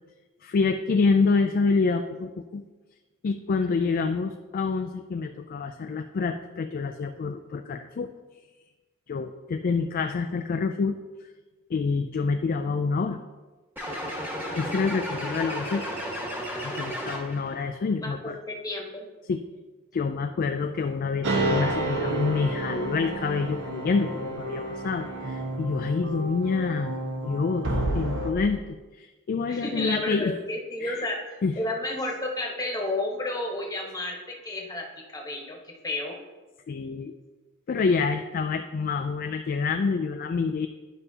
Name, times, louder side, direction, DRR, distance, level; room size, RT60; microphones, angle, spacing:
voice 1, 0.4-2.6 3.2-8.1 9.1-11.0 11.7-13.2 14.5-15.8 16.6-18.4 19.3-19.4 19.9-26.9 27.2-30.3 30.8-31.0 31.4-31.6 36.7-37.1 37.7-40.7, left 4 dB, 45° left, 7 dB, 0.3 m, -27 dB
sound 1, 13.8-17.5, equal, 10° right, 1.4 m, -33 dB
voice 2, 18.0-19.1 29.5-36.2, left 2 dB, 15° left, 0 dB, 1.2 m, -32 dB
sound 2, 21.2-28.3, right 2 dB, 65° right, 1.0 m, -30 dB
11.0 x 5.5 x 2.8 m, 1.2 s
head